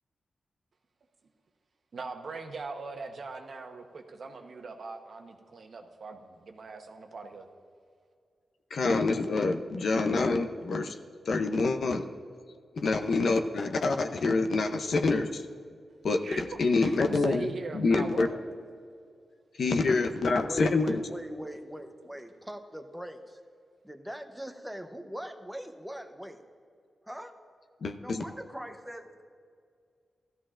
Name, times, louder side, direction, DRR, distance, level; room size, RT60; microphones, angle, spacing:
voice 1, 1.9-7.5 16.2-18.4, right 4 dB, 60° right, 4 dB, 1.0 m, -41 dB
voice 2, 8.7-10.9 11.3-12.0 12.8-15.4 16.0-18.3 19.6-21.0 27.8-28.2, left 3 dB, 65° left, 6 dB, 0.7 m, -26 dB
voice 3, 20.4-23.4 23.8-26.4 27.1-27.4 28.0-29.2, equal, 5° right, 6 dB, 0.8 m, -42 dB
16.5 x 13.5 x 2.5 m, 2.2 s
wide cardioid pair, 120°, 0 cm